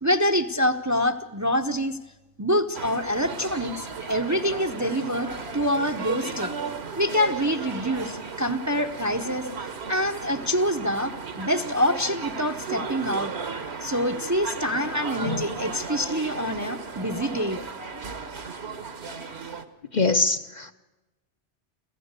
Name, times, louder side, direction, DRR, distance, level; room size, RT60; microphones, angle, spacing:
voice 1, 0.0-2.0 2.4-6.5 6.9-9.5 9.9-13.3 13.8-17.6, equal, 15° right, 7 dB, 0.8 m, -26 dB
sound 1, 2.7-19.6, right 5 dB, 65° right, 1.6 m, -35 dB
voice 2, 19.9-20.7, left 3 dB, 40° left, 7 dB, 0.9 m, -23 dB
27.5 x 15.5 x 8.2 m, 1.0 s
omnidirectional pair, 1.2 m